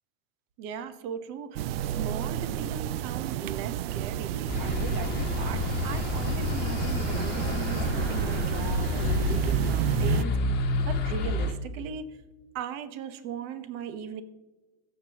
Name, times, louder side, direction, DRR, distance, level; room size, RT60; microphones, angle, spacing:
voice 1, 0.6-10.6 10.8-12.2 12.5-14.2, right 7 dB, 45° right, 11 dB, 1.1 m, -38 dB
sound 1, 1.6-10.2, right 12 dB, 75° right, 0.5 m, -31 dB
sound 2, 4.5-11.5, left 3 dB, 30° left, 1.4 m, -29 dB
22.5 x 7.6 x 3.0 m, 1.2 s
supercardioid pair, 145°, 31 cm